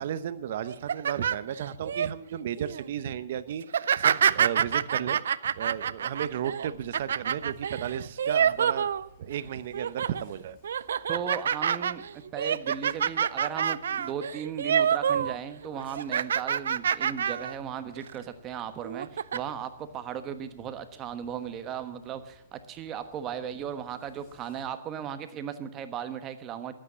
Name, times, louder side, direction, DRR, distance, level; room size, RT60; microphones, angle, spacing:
voice 1, 0.0-3.6 4.0-5.2 5.5-8.9 9.2-10.6 15.2-15.3, right 9 dB, 60° right, 14 dB, 0.8 m, -34 dB
sound 1, 0.7-2.1 2.6-2.9 3.6-9.4 9.7-10.2 10.6-15.4 15.6-17.6 18.0-18.1 18.8-19.4, right 8 dB, 75° right, 0.4 m, -27 dB
sound 2, 6.0-24.6, left 1 dB, 30° left, 5.2 m, -59 dB
voice 2, 11.1-26.7, right 8 dB, 25° right, 10 dB, 1.2 m, -36 dB
12.5 x 8.8 x 7.4 m, 0.81 s
hypercardioid pair, 135°, 0 cm